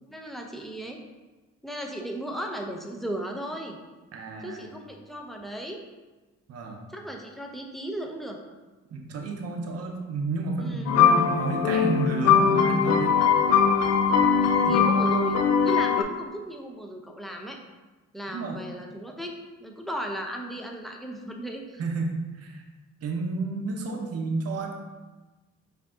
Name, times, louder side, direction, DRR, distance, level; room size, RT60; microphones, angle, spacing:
voice 1, 0.1-1.0 1.6-3.8 4.4-5.8 6.9-8.4 10.6-10.9 14.6-17.6 18.1-19.3 19.6-21.8, right 1 dB, ahead, 1 dB, 0.6 m, -36 dB
voice 2, 4.1-4.6 6.5-6.8 8.9-13.2 14.6-14.8 18.3-18.6 21.8-22.6 23.0-24.7, right 3 dB, 55° right, 2 dB, 0.7 m, -31 dB
sound 1, 10.9-16.0, left 6 dB, 60° left, 0.5 m, -21 dB
4.9 x 2.7 x 3.6 m, 1.2 s
cardioid pair, 90°, 30 cm